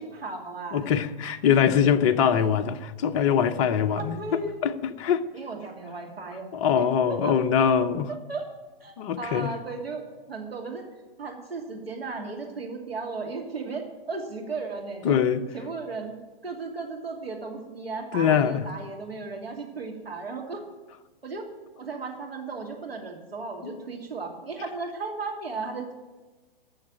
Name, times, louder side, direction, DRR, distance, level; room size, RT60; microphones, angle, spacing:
voice 1, 0.0-0.9 2.3-2.5 3.9-4.6 5.3-6.5 6.7-7.4 8.3-8.4 8.8-10.8 11.2-15.2 15.5-16.2 16.4-20.6 21.2-21.5 21.8-25.9, right 3 dB, 80° right, 2.7 m, -35 dB
voice 2, 0.7-4.2 4.6-5.2 6.5-8.1 9.0-9.5 15.0-15.5 18.1-18.6 23.6-23.8, left 8 dB, 30° left, 0.8 m, -23 dB
12.5 x 7.3 x 9.1 m
figure-of-eight pair, 115°, 30 cm